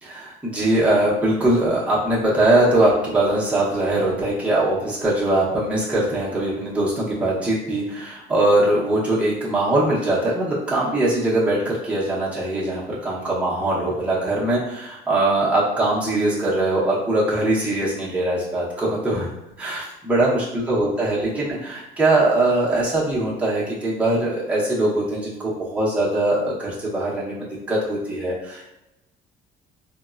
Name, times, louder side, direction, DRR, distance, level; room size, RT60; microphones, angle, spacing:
voice 1, 0.0-19.3 19.6-28.7, right 1 dB, 5° right, -7 dB, 0.7 m, -21 dB
3.5 x 2.0 x 2.3 m, 0.94 s
cardioid pair, 110°, 17 cm